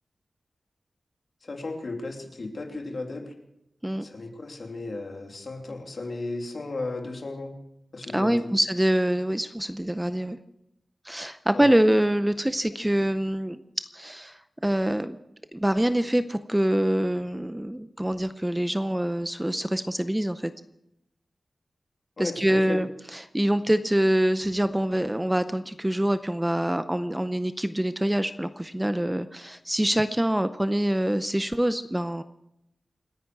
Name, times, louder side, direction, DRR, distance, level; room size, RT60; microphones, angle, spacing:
voice 1, 1.4-3.3 4.0-7.5 7.9-8.5 11.5-11.7 22.2-22.8, left 2 dB, 55° left, 2 dB, 2.8 m, -35 dB
voice 2, 8.1-10.4 11.0-13.6 13.9-15.2 15.5-20.5 22.2-32.2, right 1 dB, 10° right, 11 dB, 0.5 m, -25 dB
27.5 x 10.0 x 4.7 m, 0.83 s
wide cardioid pair, 120°, 0 cm